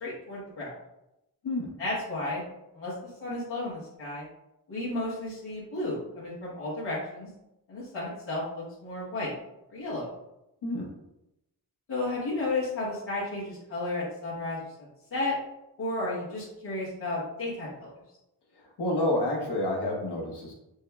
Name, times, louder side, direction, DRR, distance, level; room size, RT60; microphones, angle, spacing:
voice 1, 0.0-0.7 1.8-2.4 2.7-2.9 3.2-4.3 4.7-7.3 7.7-9.3 9.7-10.1 11.9-14.7 15.1-15.4 15.8-17.9, left 2 dB, 85° left, -8 dB, 1.4 m, -33 dB
voice 2, 18.6-20.5, left 1 dB, 65° left, 0 dB, 1.1 m, -29 dB
6.1 x 2.2 x 2.3 m, 0.89 s
supercardioid pair, 40°, 42 cm